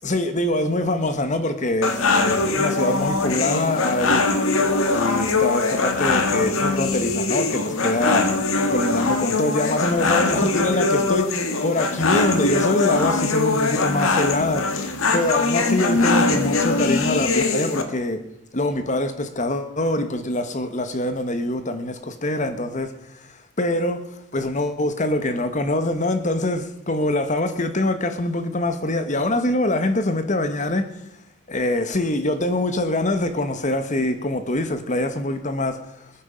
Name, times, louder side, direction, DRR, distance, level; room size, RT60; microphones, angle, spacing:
voice 1, 0.0-4.2 4.9-8.3 8.7-14.6 15.1-18.2 18.5-22.9 23.2-24.0 24.3-30.9 31.5-36.1, left 1 dB, 35° left, 9 dB, 1.1 m, -24 dB
sound 1, 1.8-17.8, left 3 dB, 65° left, 1.9 m, -22 dB
21.0 x 10.0 x 5.1 m, 0.82 s
head